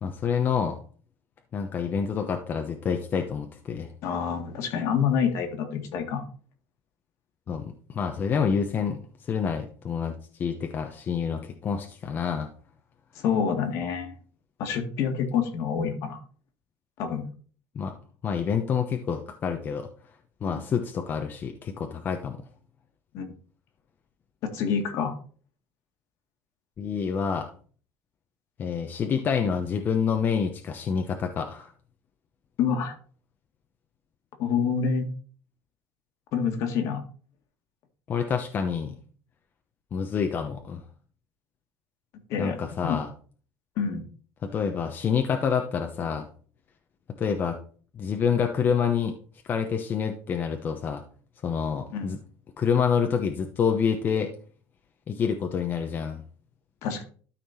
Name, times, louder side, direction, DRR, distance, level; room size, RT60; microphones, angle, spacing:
voice 1, 0.0-0.8 1.5-3.9 7.5-12.5 17.7-17.9 18.2-19.9 20.4-22.4 26.8-27.5 28.6-31.7 38.1-39.0 39.9-40.8 42.4-43.1 44.4-46.3 47.2-47.6 47.9-49.1 49.4-51.0 51.4-52.2 52.6-54.3 55.1-56.2, left 6 dB, 35° left, 4 dB, 0.9 m, -27 dB
voice 2, 4.0-6.2 13.2-14.1 14.6-16.2 17.0-17.3 23.1-23.3 24.4-25.1 32.6-33.0 34.4-35.1 36.3-37.0 42.3-42.6 42.8-43.0 43.8-44.0 51.9-52.2 56.8-57.0, left 7 dB, 65° left, 5 dB, 1.9 m, -27 dB
12.5 x 4.3 x 4.3 m, 0.43 s
cardioid pair, 130°, 6 cm